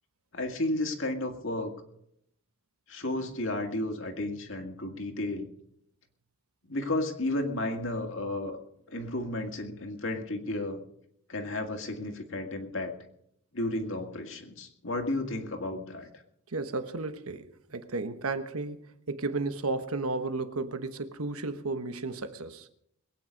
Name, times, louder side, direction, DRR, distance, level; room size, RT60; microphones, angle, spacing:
voice 1, 0.3-1.7 2.9-5.5 6.7-8.6 8.9-10.8 11.3-13.0 13.5-16.1, left 2 dB, 60° left, 2.1 m, -33 dB
voice 2, 16.5-22.7, right 3 dB, 85° right, 1.2 m, -33 dB
22.0 x 9.3 x 5.2 m
head